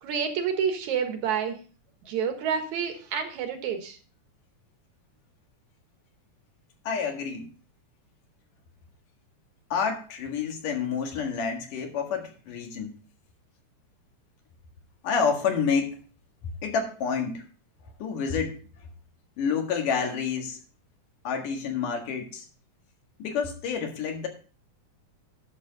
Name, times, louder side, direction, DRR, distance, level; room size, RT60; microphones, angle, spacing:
voice 1, 0.0-1.6 2.1-4.0, right 7 dB, 70° right, 6 dB, 2.7 m, -28 dB
voice 2, 6.8-7.5 9.7-13.0 15.0-16.0 16.6-17.4 18.0-18.9 19.4-20.6 21.2-22.5 23.2-24.3, left 6 dB, 90° left, 3 dB, 3.4 m, -29 dB
11.0 x 6.9 x 4.0 m, 0.38 s
omnidirectional pair, 3.6 m